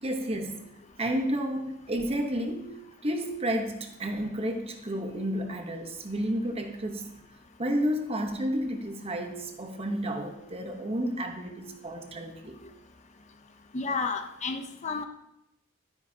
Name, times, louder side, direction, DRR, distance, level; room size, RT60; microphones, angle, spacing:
voice 1, 0.0-0.7 1.0-2.7 3.0-7.2 7.6-12.6, equal, 30° right, 5 dB, 1.0 m, -31 dB
voice 2, 13.7-15.1, left 4 dB, 35° left, 6 dB, 0.6 m, -31 dB
12.0 x 9.5 x 2.8 m, 0.83 s
head